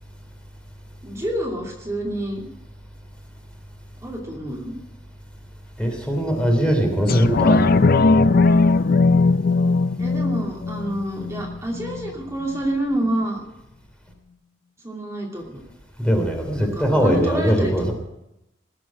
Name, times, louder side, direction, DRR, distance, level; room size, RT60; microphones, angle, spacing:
voice 1, 1.0-2.5 4.0-4.7 10.0-13.4 14.8-15.6 16.5-17.7, right 1 dB, 15° right, -3 dB, 2.9 m, -28 dB
voice 2, 5.8-7.7 16.0-17.9, equal, 5° left, 2 dB, 3.0 m, -20 dB
sound 1, 7.1-12.1 12.6-12.7, left 3 dB, 50° left, 0.5 m, -18 dB
19.5 x 7.7 x 8.6 m, 0.88 s
head